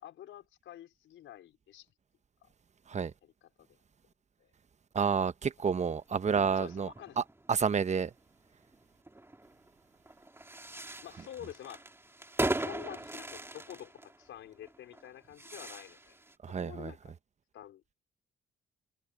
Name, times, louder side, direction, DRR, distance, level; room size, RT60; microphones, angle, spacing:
voice 1, 0.0-1.9 3.2-3.3 3.6-3.8 4.4-4.5 6.6-7.2 11.0-11.8 12.5-16.2 16.5-17.1 17.5-17.8, left 11 dB, 80° left, 5.1 m, -48 dB
voice 2, 4.9-6.9 7.2-8.1 16.4-16.9, right 6 dB, 35° right, 1.0 m, -30 dB
sound 1, 6.2-16.4, right 2 dB, 10° right, 3.2 m, -40 dB
cardioid pair, 90°, 20 cm